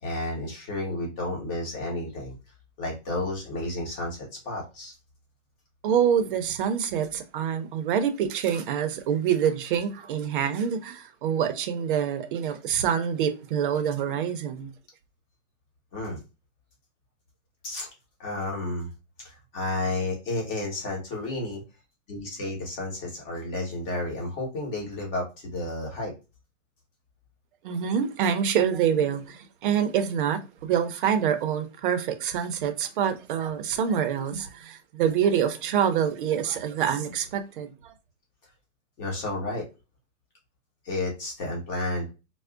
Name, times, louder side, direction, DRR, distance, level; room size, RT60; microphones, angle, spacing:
voice 1, 0.0-2.3 2.8-4.9 15.9-16.2 17.6-17.9 18.2-18.9 19.2-21.6 22.1-26.1 39.0-39.6 40.8-42.1, left 2 dB, 45° left, 1.4 m, -31 dB
voice 2, 5.8-14.7 27.6-37.7, right 8 dB, 45° right, 0.5 m, -26 dB
4.4 x 2.0 x 2.4 m
hypercardioid pair, 155°, 38 cm